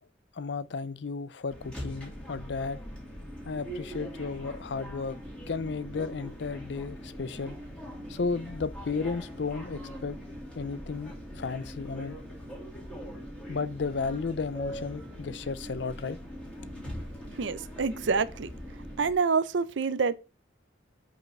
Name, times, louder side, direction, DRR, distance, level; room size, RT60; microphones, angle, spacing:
voice 1, 0.3-2.8 3.5-5.2 5.5-7.6 8.1-10.2 10.5-12.2 13.5-16.2, left 4 dB, 60° left, 0.5 m, -34 dB
sound 1, 1.5-19.1, equal, 5° left, 2.1 m, -42 dB
voice 2, 17.3-18.5 19.0-20.1, right 5 dB, 75° right, 0.5 m, -27 dB
5.3 x 4.9 x 5.9 m
head